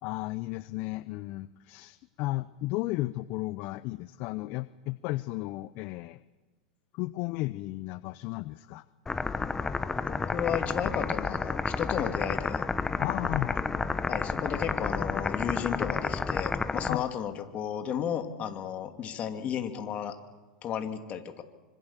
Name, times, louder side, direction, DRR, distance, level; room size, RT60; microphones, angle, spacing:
voice 1, 0.0-6.2 6.9-8.8 13.0-13.7 16.9-17.1, left 19 dB, 50° left, 15 dB, 0.7 m, -34 dB
sound 1, 9.1-16.9, left 4 dB, 10° left, 1.0 m, -30 dB
voice 2, 10.0-12.6 14.1-20.2 20.6-21.4, left 9 dB, 35° left, 6 dB, 2.6 m, -33 dB
25.5 x 25.5 x 7.4 m, 1.2 s
hypercardioid pair, 120°, 4 cm